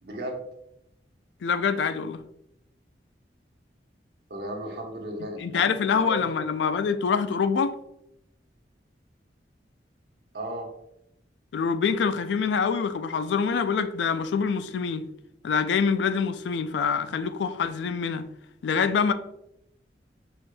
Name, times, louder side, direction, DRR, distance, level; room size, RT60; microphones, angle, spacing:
voice 1, 0.0-0.4 4.3-5.6 6.1-6.2 10.3-10.7, right 1 dB, 65° right, 1.0 m, -34 dB
voice 2, 1.4-2.2 5.4-7.7 11.5-15.0 15.4-18.3 18.6-19.1, left 6 dB, 80° left, 0.3 m, -25 dB
4.8 x 4.3 x 2.2 m
head